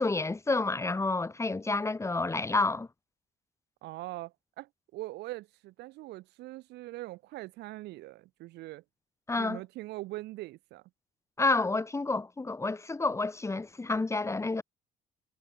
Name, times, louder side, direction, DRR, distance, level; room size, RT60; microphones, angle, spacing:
voice 1, 0.0-2.9 9.3-9.6 11.4-14.6, left 3 dB, 15° left, 2.6 m, -29 dB
voice 2, 3.8-8.8 9.4-10.8, right 18 dB, 85° right, 4.1 m, -42 dB
cardioid pair, 110°, 17 cm